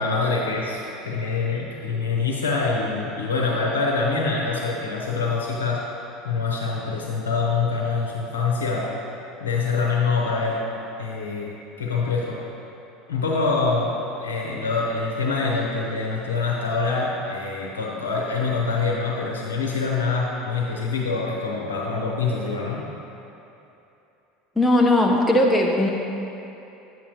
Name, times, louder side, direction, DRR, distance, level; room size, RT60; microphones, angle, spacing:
voice 1, 0.0-5.8 6.2-8.9 9.4-10.6 11.0-11.5 11.8-12.4 13.1-22.8, left 4 dB, 85° left, -2 dB, 0.8 m, -25 dB
voice 2, 24.6-25.9, left 1 dB, 10° left, -1 dB, 0.7 m, -18 dB
9.1 x 7.4 x 3.0 m, 2.9 s
hypercardioid pair, 75°, 0 cm